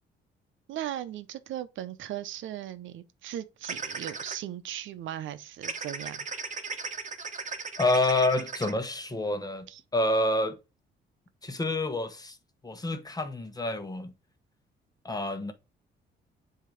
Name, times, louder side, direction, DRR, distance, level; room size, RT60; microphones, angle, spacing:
voice 1, 0.7-6.3 9.7-9.8, right 12 dB, 75° right, 0.7 m, -38 dB
sound 1, 3.6-4.3 5.6-8.7, right 5 dB, 40° right, 1.2 m, -36 dB
voice 2, 7.8-9.7 9.9-10.6 11.4-12.4 12.6-14.1 15.0-15.5, left 2 dB, 20° left, 1.1 m, -28 dB
7.4 x 2.8 x 5.0 m
cardioid pair, 90°, 20 cm